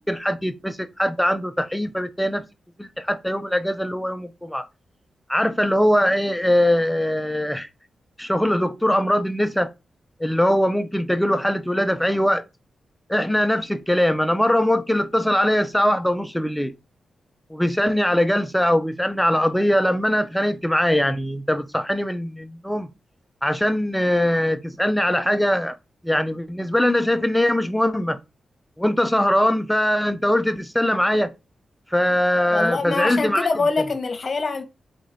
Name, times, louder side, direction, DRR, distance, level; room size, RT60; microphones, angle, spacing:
voice 1, 0.1-2.4 2.8-4.7 5.3-7.7 8.2-9.7 10.2-12.4 13.1-16.7 17.5-22.9 23.4-25.8 26.0-28.2 28.8-31.3 31.9-33.5, left 1 dB, 5° left, 0.5 m, -21 dB
voice 2, 32.5-34.6, left 4 dB, 50° left, 1.1 m, -24 dB
4.8 x 2.9 x 2.6 m
cardioid pair, 50°, 0 cm